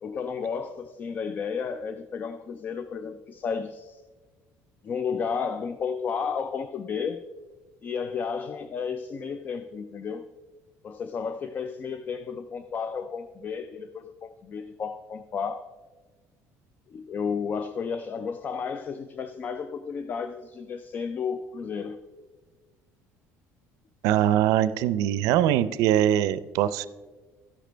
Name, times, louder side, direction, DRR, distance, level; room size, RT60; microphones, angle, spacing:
voice 1, 0.0-4.0 4.8-7.2 7.8-10.3 10.8-15.7 16.9-22.0, left 6 dB, 30° left, 11 dB, 0.3 m, -32 dB
voice 2, 24.0-26.9, right 11 dB, 75° right, 16 dB, 0.4 m, -22 dB
13.0 x 10.0 x 3.3 m, 1.4 s
cardioid pair, 155°, 6 cm